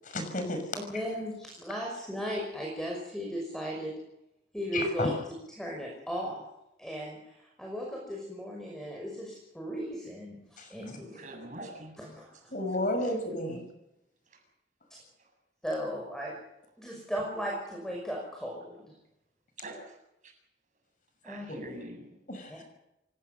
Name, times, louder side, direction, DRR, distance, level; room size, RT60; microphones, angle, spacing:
voice 1, 0.1-0.6 4.7-5.1 10.6-10.7 12.5-13.6 21.5-21.6 22.3-22.6, left 1 dB, 45° left, 6 dB, 6.0 m, -31 dB
voice 2, 0.9-3.9 4.5-5.1 5.6-6.4 6.8-11.3 12.0-12.5 13.4-13.6 14.9-15.0 15.6-16.4 16.8-18.9 21.2-21.5 22.5-22.6, equal, 5° left, -1 dB, 5.9 m, -36 dB
voice 3, 11.1-12.0 13.0-13.1 19.6-20.0 21.2-22.2, right 1 dB, 45° right, 2 dB, 7.6 m, -44 dB
28.0 x 18.0 x 6.9 m, 0.88 s
head